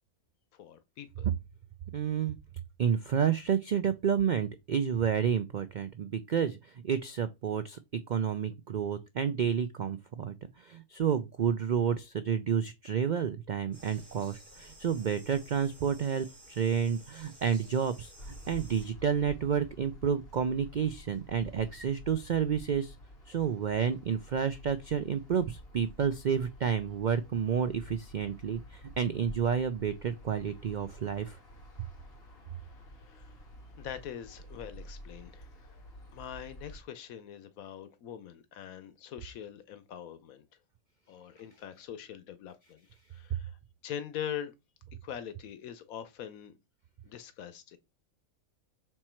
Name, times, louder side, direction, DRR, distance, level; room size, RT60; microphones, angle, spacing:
voice 1, 0.5-1.3 33.0-33.4 33.8-35.8 36.1-40.4 41.1-42.8 43.1-44.5 45.0-46.5 47.0-47.8, left 9 dB, 85° left, 1.2 m, -43 dB
voice 2, 1.9-2.4 2.8-18.1 18.5-23.0 23.3-31.4, right 7 dB, 75° right, 0.4 m, -30 dB
sound 1, 13.7-18.9, right 1 dB, 30° right, 4.7 m, -54 dB
sound 2, 18.2-36.8, equal, 45° left, 1.8 m, -50 dB
6.1 x 4.4 x 4.4 m
omnidirectional pair, 1.4 m